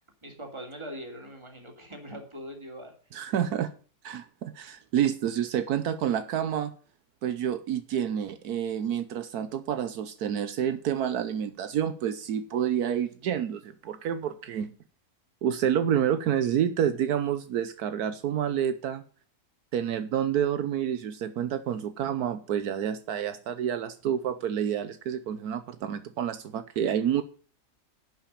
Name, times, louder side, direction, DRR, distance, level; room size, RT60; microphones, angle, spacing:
voice 1, 0.2-2.9, equal, 20° right, 2 dB, 2.9 m, -41 dB
voice 2, 3.1-3.7 4.0-6.7 7.2-14.7 15.4-19.0 19.7-27.2, right 9 dB, 75° right, 11 dB, 1.3 m, -28 dB
11.0 x 5.7 x 8.8 m, 0.40 s
omnidirectional pair, 1.6 m